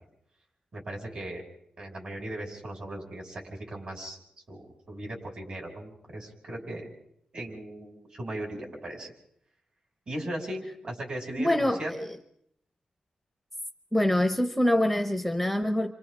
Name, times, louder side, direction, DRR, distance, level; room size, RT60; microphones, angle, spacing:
voice 1, 0.7-1.5 1.8-4.2 4.5-6.9 7.3-9.1 10.1-11.9, right 1 dB, 40° right, 0 dB, 6.0 m, -37 dB
voice 2, 11.4-12.1 13.9-15.9, left 1 dB, ahead, 8 dB, 0.7 m, -25 dB
29.0 x 26.0 x 3.7 m, 0.72 s
wide cardioid pair, 170°, 3 cm